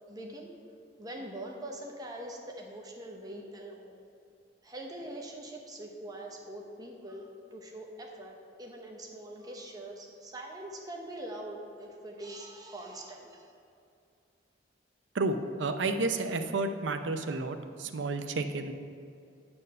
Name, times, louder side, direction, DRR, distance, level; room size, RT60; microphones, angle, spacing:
voice 1, 0.1-0.5 1.0-4.0 4.6-13.5, right 1 dB, 20° right, 0 dB, 0.8 m, -43 dB
voice 2, 15.1-18.7, right 3 dB, 90° right, 8 dB, 0.6 m, -31 dB
9.8 x 4.4 x 6.5 m, 2.5 s
head